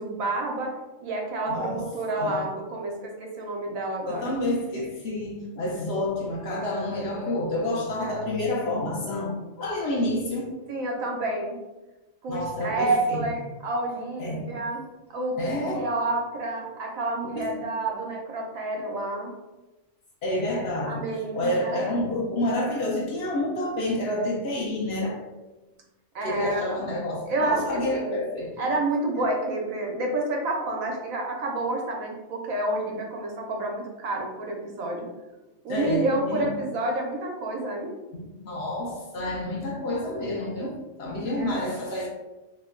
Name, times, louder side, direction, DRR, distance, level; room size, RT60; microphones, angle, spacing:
voice 1, 0.0-4.4 8.0-8.2 10.7-11.6 12.2-14.8 15.1-15.4 15.7-19.3 20.9-21.8 26.1-26.8 27.3-28.2 28.6-35.1 35.6-37.9 41.4-41.7, right 2 dB, 85° right, 0 dB, 1.1 m, -29 dB
voice 2, 1.5-1.8 2.2-2.5 4.1-10.6 12.3-13.3 14.2-14.5 15.4-15.9 17.2-17.5 20.2-21.0 21.3-25.2 26.2-28.7 29.1-29.3 35.7-36.5 38.1-42.1, left 1 dB, 60° left, -2 dB, 0.8 m, -29 dB
3.0 x 2.1 x 3.6 m, 1.1 s
omnidirectional pair, 1.4 m